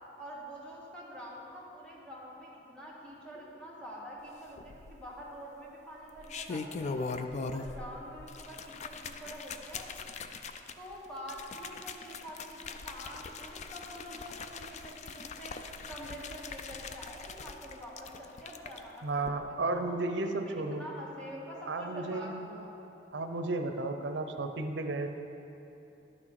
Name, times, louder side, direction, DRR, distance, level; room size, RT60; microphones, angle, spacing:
voice 1, 0.2-7.1 7.5-9.9 10.8-15.6 15.9-19.2 19.6-22.7, equal, 5° left, -6 dB, 1.6 m, -46 dB
sound 1, 4.6-5.2 6.0-7.9 8.2-18.8 19.2-19.3, left 4 dB, 40° left, 0.4 m, -41 dB
voice 2, 19.0-20.9 21.7-22.5 23.1-25.1, right 2 dB, 75° right, 6 dB, 0.6 m, -33 dB
11.0 x 6.1 x 4.6 m, 2.9 s
head